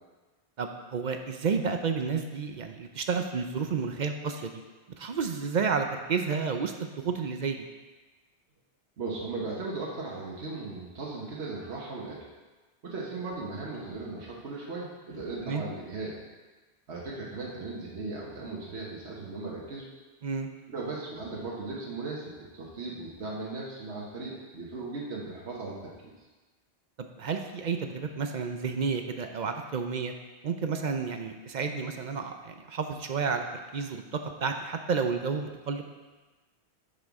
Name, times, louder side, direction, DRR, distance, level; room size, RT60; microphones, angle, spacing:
voice 1, 0.6-4.6 5.0-7.7 15.5-15.6 20.2-20.5 27.0-30.1 30.4-33.4 33.7-35.9, right 5 dB, 50° right, 5 dB, 0.6 m, -31 dB
voice 2, 9.0-12.2 12.8-16.2 16.9-19.8 20.7-25.9, right 3 dB, 90° right, -4 dB, 1.5 m, -37 dB
9.9 x 5.3 x 3.6 m, 1.3 s
omnidirectional pair, 1.1 m